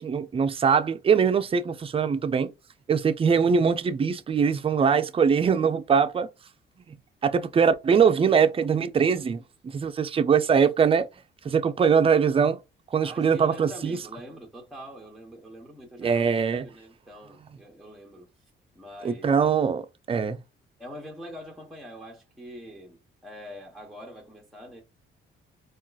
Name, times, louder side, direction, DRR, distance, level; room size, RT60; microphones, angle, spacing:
voice 1, 0.0-2.5 2.9-6.3 6.9-7.0 7.2-11.1 11.4-12.6 12.9-14.0 16.0-16.7 19.0-20.4, right 6 dB, 30° right, 0.4 m, -22 dB
voice 2, 13.0-18.3 18.7-19.3 20.8-24.8, equal, ahead, 0.9 m, -44 dB
3.6 x 2.4 x 2.3 m
cardioid pair, 90°, 20 cm